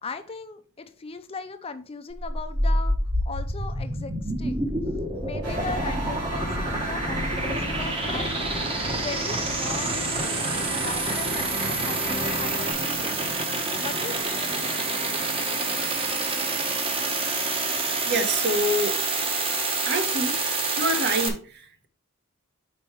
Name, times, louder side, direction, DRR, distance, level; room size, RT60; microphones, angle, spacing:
voice 1, 0.0-3.0 3.3-4.7 5.2-8.3 8.9-13.3 13.8-14.8, left 4 dB, 25° left, 0.5 m, -38 dB
sound 1, 2.1-21.3, right 2 dB, 25° right, 0.9 m, -27 dB
sound 2, 5.4-12.7, equal, 90° right, 1.7 m, -35 dB
voice 2, 18.0-19.0 19.8-21.9, right 1 dB, 50° right, 1.0 m, -27 dB
5.4 x 4.5 x 4.5 m
head